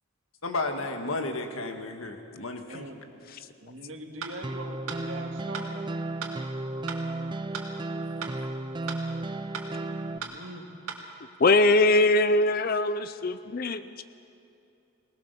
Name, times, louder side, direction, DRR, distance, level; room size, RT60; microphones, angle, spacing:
voice 1, 0.4-2.8, left 2 dB, 75° left, 5 dB, 1.8 m, -33 dB
voice 2, 2.7-3.0 3.6-5.8 10.1-10.7, right 1 dB, 65° right, 3 dB, 2.1 m, -42 dB
sound 1, 4.2-4.3 4.9-5.0 5.5-5.7 6.2-6.3 6.9-7.0 7.5-7.7 8.2-8.3 8.9-9.0 9.5-9.7 10.2-10.3 10.9-11.0, right 6 dB, 85° right, 2.3 m, -36 dB
sound 2, 4.4-10.2, right 2 dB, 20° right, 0.4 m, -34 dB
voice 3, 11.4-14.0, left 2 dB, 45° left, 12 dB, 0.5 m, -22 dB
22.5 x 19.0 x 6.9 m, 2.6 s
head